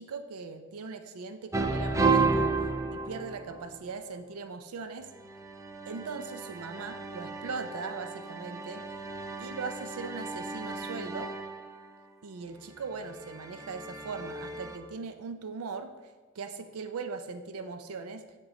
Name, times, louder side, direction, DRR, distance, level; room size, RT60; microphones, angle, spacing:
voice 1, 0.0-2.5 2.9-5.1 5.9-8.8 9.4-11.3 12.2-15.9 16.3-18.2, right 4 dB, 85° right, 8 dB, 0.5 m, -39 dB
sound 1, 1.5-3.9 5.1-11.8 12.8-14.8, right 4 dB, 15° right, 0.4 m, -33 dB
9.0 x 3.8 x 4.0 m, 1.4 s
head